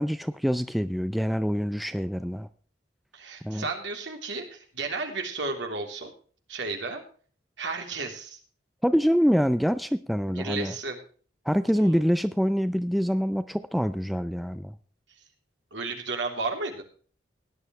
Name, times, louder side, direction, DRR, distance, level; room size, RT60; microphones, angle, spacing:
voice 1, 0.0-2.5 3.4-3.7 8.8-10.8 11.4-14.7, equal, ahead, 11 dB, 0.4 m, -25 dB
voice 2, 3.1-6.1 6.5-7.0 7.6-8.4 10.3-11.0 11.7-12.0 15.7-16.8, right 3 dB, 70° right, 3 dB, 3.3 m, -33 dB
18.0 x 10.5 x 3.1 m, 0.42 s
head